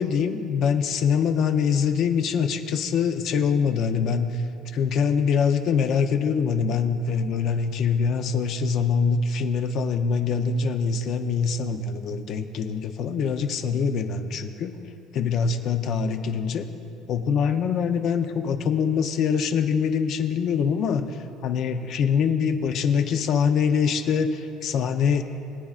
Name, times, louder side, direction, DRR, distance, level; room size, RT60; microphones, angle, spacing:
voice 1, 0.0-4.4 4.7-14.8 15.1-16.6 17.1-25.2, left 6 dB, 40° left, 8 dB, 0.6 m, -24 dB
21.5 x 8.7 x 2.4 m, 2.6 s
cardioid pair, 175°, 0 cm